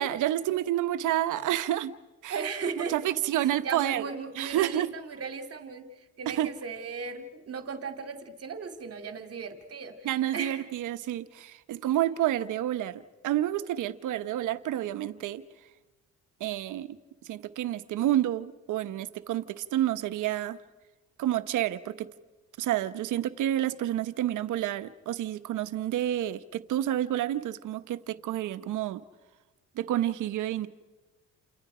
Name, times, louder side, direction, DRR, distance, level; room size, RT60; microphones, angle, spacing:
voice 1, 0.0-1.9 2.2-2.4 2.9-4.1 4.4-4.9 6.3-6.5 10.0-15.4 16.4-17.0 17.3-20.6 21.2-22.1 22.6-29.0 29.8-30.7, right 13 dB, 80° right, 13 dB, 1.2 m, -29 dB
voice 2, 2.3-3.2 3.4-5.9 6.2-10.6, right 5 dB, 50° right, 7 dB, 2.5 m, -36 dB
29.5 x 28.0 x 5.0 m, 1.2 s
cardioid pair, 90°, 30 cm